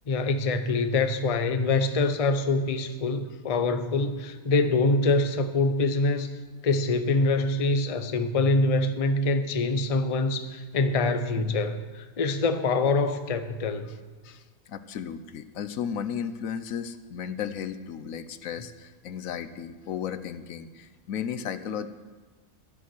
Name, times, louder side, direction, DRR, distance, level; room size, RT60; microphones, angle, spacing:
voice 1, 0.1-6.3 6.6-13.9, left 3 dB, 35° left, 9 dB, 0.6 m, -25 dB
voice 2, 14.2-21.9, left 8 dB, 75° left, 11 dB, 1.1 m, -35 dB
12.0 x 11.5 x 6.2 m, 1.4 s
omnidirectional pair, 1.4 m